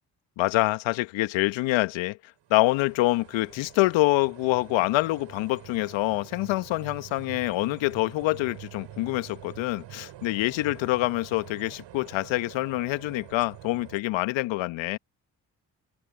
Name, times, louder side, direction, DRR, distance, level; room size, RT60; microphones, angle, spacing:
voice 1, 0.4-2.2 2.5-15.0, left 19 dB, 70° left, 1.8 m, -26 dB
sound 1, 2.4-14.0, right 13 dB, 65° right, 7.3 m, -46 dB
hypercardioid pair, 40°, 47 cm